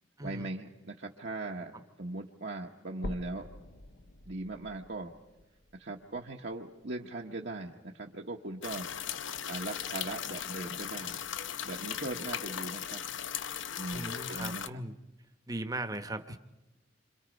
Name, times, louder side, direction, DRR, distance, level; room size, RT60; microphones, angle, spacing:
voice 1, 0.2-1.7 2.0-3.5 4.3-5.1 5.7-8.9 9.5-11.2 11.6-13.1 13.8-14.8, right 2 dB, 60° right, -1 dB, 1.2 m, -39 dB
sound 1, 3.0-7.0 7.6-7.7 8.3-8.4 8.7-8.8 9.6-9.7, left 1 dB, 70° left, 1.2 m, -46 dB
sound 2, 8.6-14.7, left 9 dB, 90° left, 0.8 m, -38 dB
voice 2, 13.9-14.9 15.5-16.4, right 1 dB, 20° right, 9 dB, 1.0 m, -38 dB
28.0 x 26.0 x 5.3 m, 1.0 s
head